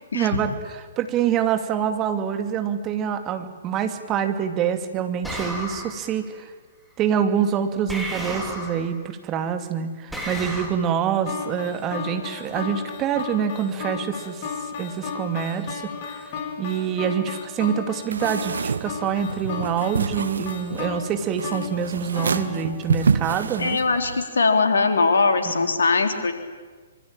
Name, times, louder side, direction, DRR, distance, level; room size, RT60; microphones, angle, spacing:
voice 1, 0.1-6.5 7.0-14.4 14.8-16.2 16.6-23.8 25.6-25.7, right 8 dB, 25° right, 7 dB, 2.7 m, -26 dB
sound 1, 5.2-6.1 7.9-8.9 10.1-10.7, equal, ahead, 4.9 m, -32 dB
sound 2, 11.3-23.4, left 6 dB, 40° left, 3.8 m, -35 dB
sound 3, 18.1-24.2, right 5 dB, 65° right, 1.1 m, -28 dB
voice 2, 23.6-26.3, left 4 dB, 70° left, 6 dB, 3.8 m, -21 dB
25.5 x 24.0 x 9.0 m, 1.4 s
figure-of-eight pair, 120°, 0 cm